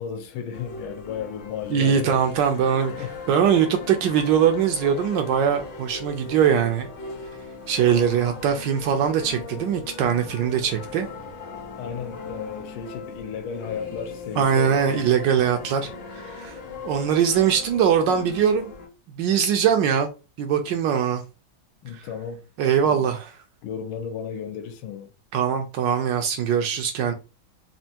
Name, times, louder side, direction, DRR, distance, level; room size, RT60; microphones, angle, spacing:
voice 1, 0.0-2.2 2.9-3.1 11.8-15.1 21.8-22.5 22.8-23.1 23.6-25.1, left 7 dB, 85° left, 1.6 m, -34 dB
sound 1, 0.5-18.9, left 4 dB, 65° left, 1.6 m, -38 dB
voice 2, 1.7-2.9 3.3-6.9 7.7-11.1 14.4-16.6 16.8-18.7 19.2-20.1 20.4-21.2 22.6-23.3 25.3-27.1, right 8 dB, 70° right, 1.1 m, -21 dB
4.3 x 2.5 x 2.8 m
omnidirectional pair, 2.2 m